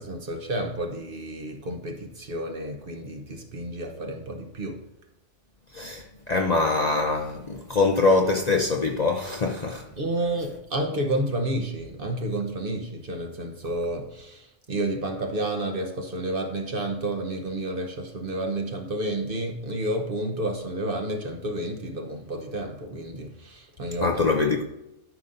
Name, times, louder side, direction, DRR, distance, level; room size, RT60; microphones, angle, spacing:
voice 1, 0.0-4.8 9.9-24.3, right 1 dB, 50° right, 1.1 m, -30 dB
voice 2, 5.7-9.9 24.0-24.6, left 3 dB, 45° left, 0.6 m, -23 dB
12.5 x 5.4 x 2.6 m
omnidirectional pair, 1.3 m